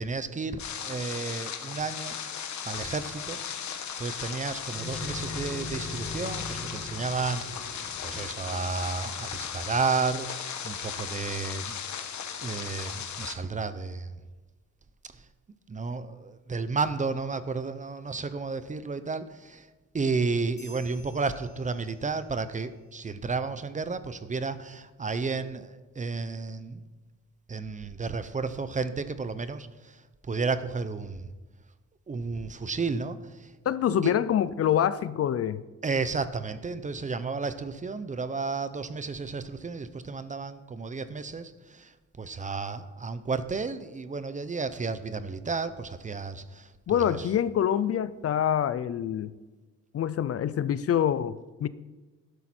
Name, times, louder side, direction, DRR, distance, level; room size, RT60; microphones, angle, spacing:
voice 1, 0.0-2.2 2.6-3.4 3.6-11.8 12.4-14.2 15.1-15.3 15.7-19.7 19.9-26.8 27.5-31.3 32.1-33.5 34.0-34.1 35.8-47.3, right 4 dB, 25° right, 13 dB, 0.6 m, -32 dB
sound 1, 0.6-13.3, left 8 dB, 65° left, 1.3 m, -36 dB
sound 2, 4.7-9.6, left 2 dB, ahead, 3.5 m, -41 dB
sound 3, 20.6-22.4, equal, 20° left, 2.2 m, -54 dB
voice 2, 33.7-35.6 46.9-49.3 49.9-51.7, left 9 dB, 50° left, 16 dB, 0.5 m, -26 dB
12.0 x 12.0 x 4.3 m, 1.2 s
wide cardioid pair, 155°, 30 cm